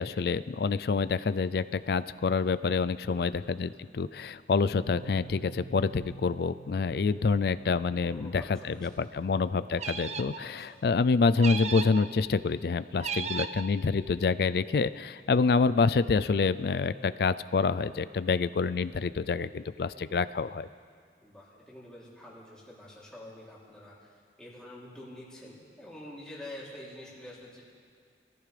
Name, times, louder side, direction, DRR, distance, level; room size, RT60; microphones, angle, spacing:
voice 1, 0.0-20.7, left 4 dB, 60° left, 14 dB, 0.4 m, -27 dB
voice 2, 3.1-3.4 8.1-8.9 9.1-9.3 10.4-10.9 19.9-20.2 21.2-27.6, left 1 dB, 5° left, -8 dB, 3.0 m, -47 dB
Piano, 4.7-12.1, right 6 dB, 70° right, 2.4 m, -51 dB
sound 1, 9.8-10.4 11.4-12.0 13.0-13.7, right 5 dB, 40° right, 0.5 m, -35 dB
24.5 x 14.5 x 3.3 m, 2.2 s
head